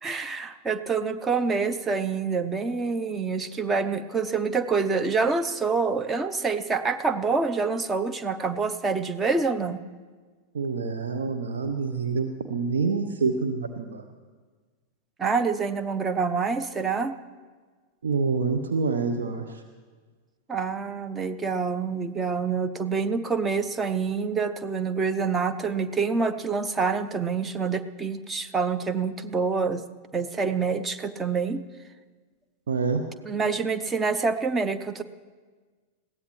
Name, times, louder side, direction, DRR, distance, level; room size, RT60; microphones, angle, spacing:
voice 1, 0.0-9.8 15.2-17.2 20.5-29.8 30.1-31.6 33.2-35.0, right 5 dB, 15° right, 11 dB, 0.7 m, -26 dB
voice 2, 10.5-14.0 18.0-19.6 32.7-33.0, right 4 dB, 65° right, 6 dB, 0.8 m, -27 dB
21.0 x 16.0 x 3.2 m, 1.5 s
figure-of-eight pair, 90°, 0 cm